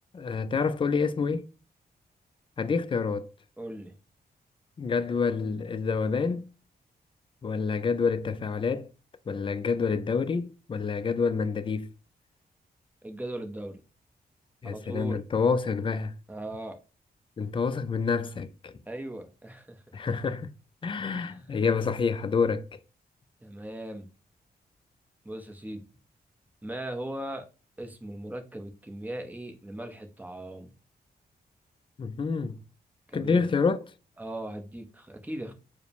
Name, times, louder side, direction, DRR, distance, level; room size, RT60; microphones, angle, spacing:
voice 1, 0.1-1.5 2.6-3.3 4.8-6.5 7.4-8.9 9.3-11.9 14.6-16.1 17.4-18.7 19.9-20.5 20.8-22.8 32.0-32.6 33.1-33.8, left 5 dB, 30° left, 0.4 m, -28 dB
voice 2, 3.6-3.9 13.0-13.8 14.6-15.2 16.3-16.8 18.9-19.8 21.0-21.5 23.4-24.1 25.2-25.8 26.6-27.5 27.8-30.7 33.1-33.4 34.2-35.5, right 1 dB, 10° right, 0.7 m, -38 dB
4.7 x 2.1 x 3.3 m
wide cardioid pair, 100°, 17 cm